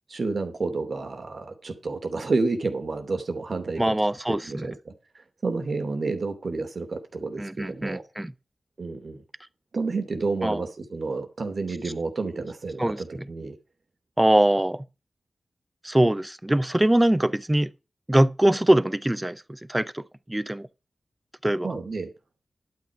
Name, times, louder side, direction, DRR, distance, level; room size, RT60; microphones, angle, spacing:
voice 1, 0.1-4.0 4.3-4.9 5.4-8.0 8.8-9.2 9.7-13.5 21.6-22.1, right 3 dB, 60° right, 2.9 m, -30 dB
voice 2, 3.8-4.7 7.4-8.3 10.4-10.6 12.8-13.3 14.2-14.9 15.8-17.7 18.1-20.7 21.4-21.7, right 1 dB, 15° right, 0.7 m, -23 dB
11.5 x 8.9 x 4.9 m
wide cardioid pair, 90°, 0 cm